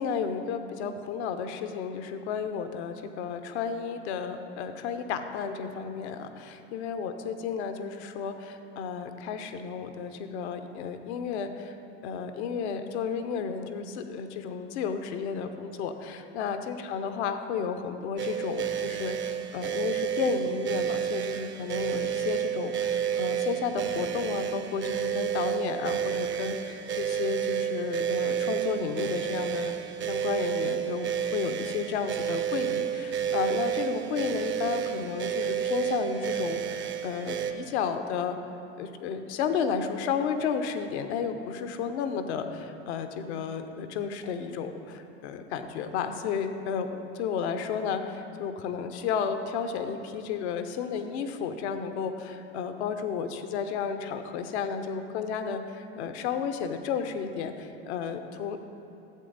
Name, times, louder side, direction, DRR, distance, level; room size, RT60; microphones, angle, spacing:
voice 1, 0.0-11.7 12.0-38.4 38.8-58.6, left 6 dB, 70° left, 8 dB, 0.8 m, -32 dB
sound 1, 18.2-37.5, right 9 dB, 35° right, 0.7 m, -30 dB
11.0 x 7.8 x 4.0 m, 2.8 s
hypercardioid pair, 80°, 35 cm